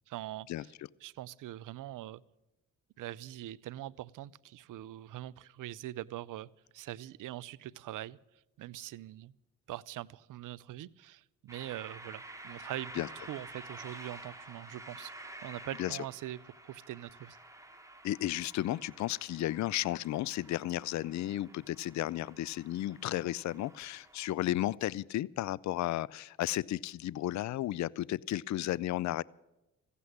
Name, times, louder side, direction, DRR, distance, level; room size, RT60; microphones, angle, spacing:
voice 1, 0.1-0.7 1.0-2.2 3.0-6.5 6.7-8.2 8.6-9.3 9.7-15.1 15.4-17.4, right 14 dB, 70° right, 21 dB, 0.6 m, -43 dB
sound 1, 11.5-24.3, right 2 dB, 10° right, 2.6 m, -50 dB
voice 2, 18.0-29.2, left 14 dB, 55° left, 24 dB, 0.5 m, -33 dB
15.0 x 8.3 x 9.8 m, 0.96 s
supercardioid pair, 50°, 33 cm